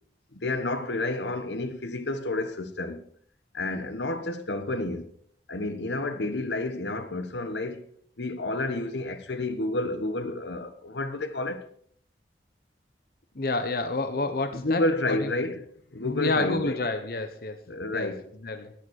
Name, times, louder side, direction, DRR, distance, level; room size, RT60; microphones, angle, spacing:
voice 1, 0.3-3.0 3.5-5.1 5.5-7.8 8.2-11.7 14.5-15.6 15.9-16.8 17.7-18.2, left 2 dB, 85° left, 1.4 m, -30 dB
voice 2, 13.3-14.8 15.1-15.3 16.0-17.6 17.9-18.1 18.4-18.7, left 2 dB, 55° left, 1.0 m, -29 dB
11.5 x 10.0 x 6.4 m
head